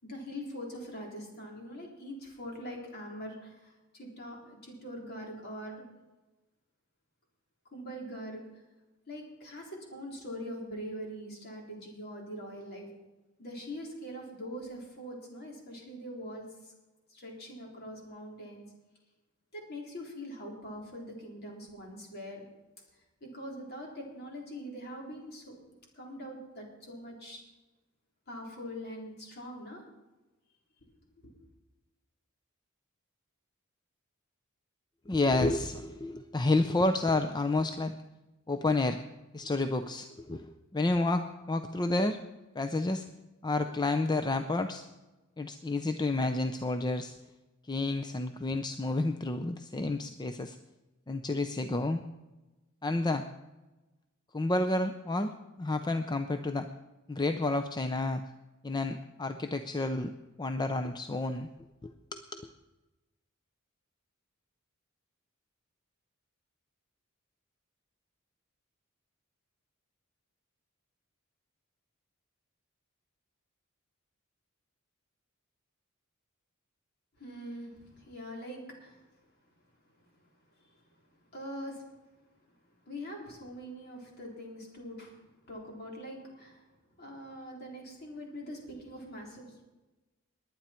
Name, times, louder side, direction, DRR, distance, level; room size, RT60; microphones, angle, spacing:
voice 1, 0.0-5.8 7.7-8.4 9.1-12.9 13.4-16.7 17.1-18.7 19.5-22.4 23.2-25.6 25.9-27.4 28.3-29.8 31.2-31.3 77.2-79.0 80.1-80.2 80.6-80.8 81.3-81.8 82.5-82.6 82.8-86.7 87.0-89.6, equal, 50° left, -1 dB, 3.8 m, -43 dB
voice 2, 35.1-37.9 38.5-39.0 39.3-42.2 42.5-43.1 43.4-44.8 45.4-47.2 47.6-50.6 51.1-52.0 52.8-53.3 54.3-56.7 57.1-58.2 58.6-60.1 60.4-61.5 61.8-62.5, left 2 dB, 20° left, 8 dB, 0.5 m, -30 dB
20.5 x 9.5 x 4.4 m, 1.1 s
head